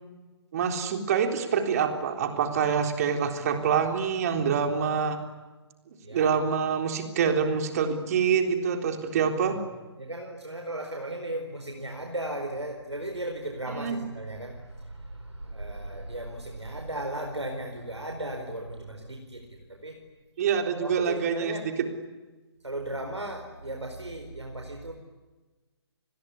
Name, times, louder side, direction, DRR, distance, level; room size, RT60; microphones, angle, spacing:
voice 1, 0.5-5.2 6.1-9.6 13.8-14.0 20.4-21.7, right 6 dB, 35° right, 6 dB, 3.7 m, -26 dB
voice 2, 6.0-6.3 9.3-9.6 10.0-20.0 20.4-20.5 20.8-21.7 22.6-24.9, right 1 dB, 80° right, 3 dB, 4.6 m, -36 dB
28.5 x 21.0 x 9.9 m, 1.2 s
figure-of-eight pair, 140°, 14 cm